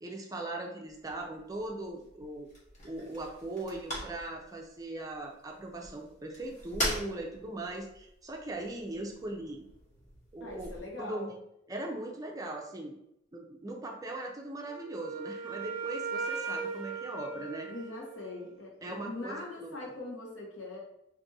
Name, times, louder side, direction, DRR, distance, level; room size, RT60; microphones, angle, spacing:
voice 1, 0.0-2.5 2.8-9.6 10.3-10.7 11.0-11.3 11.7-12.9 13.3-17.7 18.8-19.7, right 2 dB, 20° right, 1 dB, 0.4 m, -39 dB
sound 1, 0.8-10.8, equal, 40° left, 0.9 m, -42 dB
voice 2, 10.4-11.3 17.7-20.8, left 2 dB, 75° left, -3 dB, 1.0 m, -42 dB
Wind instrument woodwind instrument, 14.7-18.5, right 5 dB, 85° right, 0.4 m, -38 dB
2.6 x 2.4 x 4.0 m, 0.79 s
head